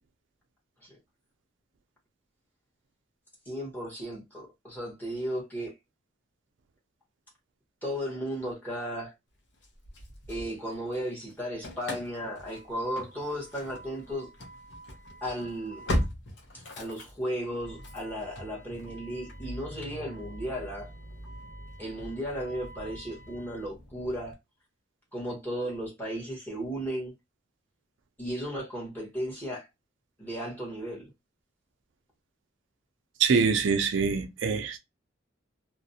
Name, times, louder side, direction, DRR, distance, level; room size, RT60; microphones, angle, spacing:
voice 1, 3.5-5.7 7.8-9.1 10.3-14.3 15.2-15.9 16.5-20.9 21.8-24.3 25.1-27.1 28.2-29.7 30.2-31.1, equal, 10° left, 0.9 m, -35 dB
Engine starting / Slam, 9.6-11.0 11.3-24.3, equal, 65° left, 0.7 m, -39 dB
voice 2, 33.2-34.8, right 5 dB, 80° right, 0.4 m, -24 dB
2.4 x 2.0 x 2.6 m
head